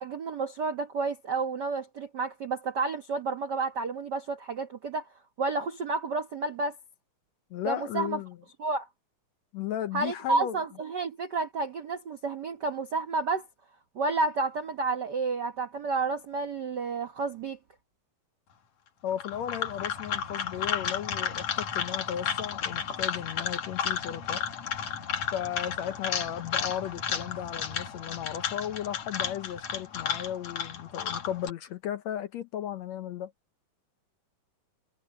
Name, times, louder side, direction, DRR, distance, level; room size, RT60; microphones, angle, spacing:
voice 1, 0.0-5.0 5.4-6.7 7.6-8.2 8.6-8.9 9.9-13.4 13.9-17.6, right 3 dB, 80° right, 0.9 m, -30 dB
voice 2, 7.5-8.4 9.5-10.6 19.0-24.4 25.3-33.3, left 10 dB, 70° left, 1.8 m, -35 dB
sound 1, 19.1-31.5, left 7 dB, 55° left, 3.1 m, -33 dB
omnidirectional pair, 3.8 m